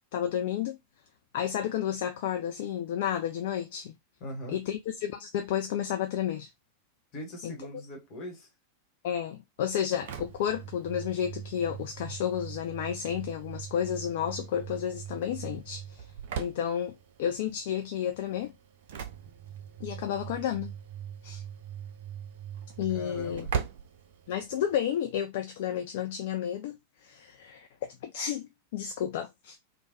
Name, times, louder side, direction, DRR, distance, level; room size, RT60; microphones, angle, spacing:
voice 1, 0.1-0.8 1.3-3.9 4.5-6.5 7.4-7.5 9.0-16.1 16.4-18.5 19.8-20.7 21.2-21.4 22.8-23.5 24.3-29.6, left 9 dB, 50° left, 0.3 m, -31 dB
voice 2, 4.2-4.6 7.1-8.5 22.9-23.5, left 1 dB, 35° left, 1.0 m, -41 dB
Engine / Slam, 9.7-24.8, right 8 dB, 55° right, 0.4 m, -41 dB
3.2 x 2.0 x 2.6 m
figure-of-eight pair, 90°, 0 cm